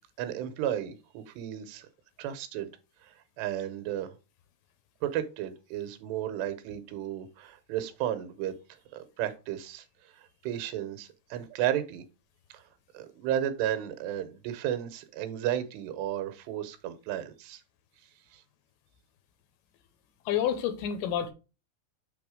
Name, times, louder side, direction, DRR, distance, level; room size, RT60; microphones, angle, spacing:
voice 1, 0.2-1.9 2.2-2.7 3.0-4.1 5.0-8.6 8.9-9.8 10.1-12.0 12.5-12.6 12.9-17.6 18.3-18.4, right 11 dB, 85° right, 2.9 m, -33 dB
voice 2, 20.3-21.3, left 9 dB, 80° left, 2.6 m, -29 dB
7.0 x 3.4 x 4.8 m
omnidirectional pair, 4.8 m